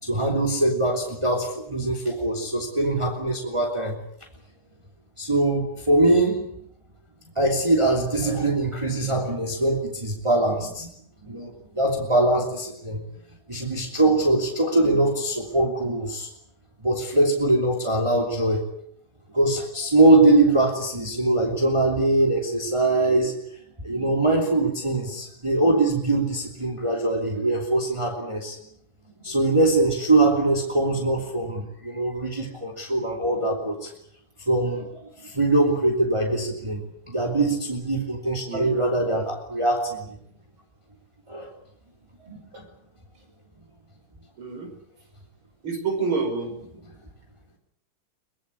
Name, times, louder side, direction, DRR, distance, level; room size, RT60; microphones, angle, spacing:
voice 1, 0.0-4.0 5.2-6.5 7.3-10.9 11.2-13.0 13.5-16.3 16.8-18.6 19.3-23.4 23.8-28.6 29.2-33.9 34.5-40.1 41.3-41.5 42.2-42.6, right 2 dB, 15° right, 0 dB, 3.0 m, -22 dB
voice 2, 44.4-44.7 45.6-46.5, right 4 dB, 80° right, 5 dB, 6.3 m, -27 dB
23.5 x 22.0 x 8.5 m, 0.71 s
omnidirectional pair, 2.3 m